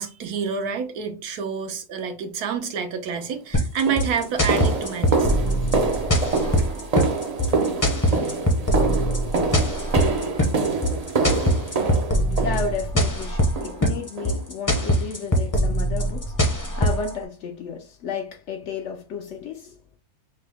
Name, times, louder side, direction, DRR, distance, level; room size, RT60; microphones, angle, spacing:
voice 1, 0.0-5.3, right 6 dB, 85° right, 1.3 m, -28 dB
sound 1, 3.2-3.3 3.9-13.1 13.6-13.9 14.2-14.4 14.8-15.0 15.4-15.5 16.0-16.1, right 4 dB, 60° right, 0.4 m, -26 dB
sound 2, 3.5-17.1, equal, 20° left, 0.5 m, -22 dB
voice 2, 12.1-19.8, left 5 dB, 70° left, 0.7 m, -33 dB
5.5 x 2.0 x 3.4 m
omnidirectional pair, 1.6 m